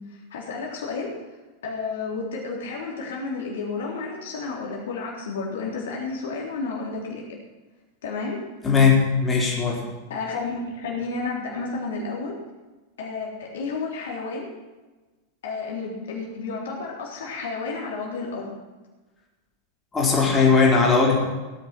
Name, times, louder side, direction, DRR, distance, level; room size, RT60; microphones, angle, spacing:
voice 1, 0.3-1.1 1.6-7.3 8.0-8.4 10.1-12.3 13.0-14.5 15.4-18.5, left 4 dB, 60° left, -2 dB, 3.6 m, -31 dB
voice 2, 8.6-9.8 19.9-21.1, left 5 dB, 15° left, -3 dB, 4.2 m, -18 dB
17.0 x 10.0 x 5.9 m, 1.2 s
figure-of-eight pair, 90°, 0 cm